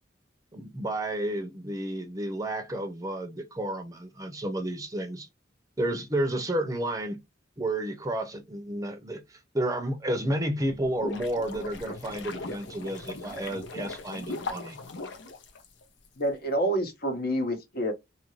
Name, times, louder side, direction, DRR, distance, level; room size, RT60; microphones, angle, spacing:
voice 1, 0.5-5.3 5.8-7.2 7.6-14.8, right 1 dB, 20° right, 0.6 m, -31 dB
sound 1, 10.7-16.1, left 3 dB, 75° left, 0.7 m, -39 dB
voice 2, 16.2-17.9, right 1 dB, 55° left, 1.0 m, -28 dB
2.8 x 2.6 x 3.0 m
head